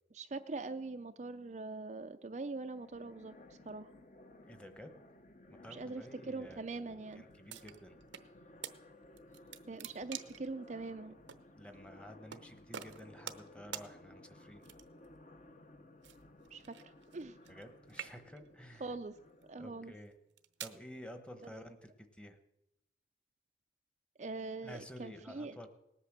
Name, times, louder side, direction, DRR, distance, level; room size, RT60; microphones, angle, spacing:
voice 1, 0.1-3.3 3.7-3.9 5.7-7.2 9.6-11.2 16.5-17.4 18.8-19.1 19.5-19.9 21.4-21.5 24.2-25.7, right 3 dB, 40° right, 8 dB, 0.4 m, -43 dB
sound 1, 2.7-19.9, left 2 dB, 40° left, 1.0 m, -58 dB
voice 2, 4.4-4.9 5.5-8.0 11.6-14.6 17.5-18.9 19.6-20.2 20.6-22.4 24.6-25.7, equal, 5° left, 8 dB, 1.0 m, -52 dB
sound 2, 7.5-8.3 8.6-8.8 9.2-10.5 11.3-11.4 12.3-12.4 12.7-13.5 13.7-13.9 14.6-15.1 16.0-17.6 17.9-18.5 19.2-19.4 20.1-20.8, right 9 dB, 85° right, 0.9 m, -46 dB
19.0 x 8.4 x 7.3 m, 0.90 s
head